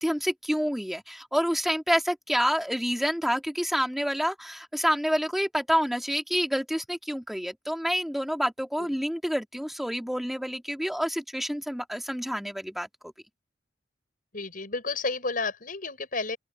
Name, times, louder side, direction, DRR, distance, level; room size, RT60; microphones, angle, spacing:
voice 1, 0.0-12.9, equal, ahead, 2.7 m, -28 dB
voice 2, 14.3-16.4, left 3 dB, 50° left, 6.9 m, -31 dB
open air
head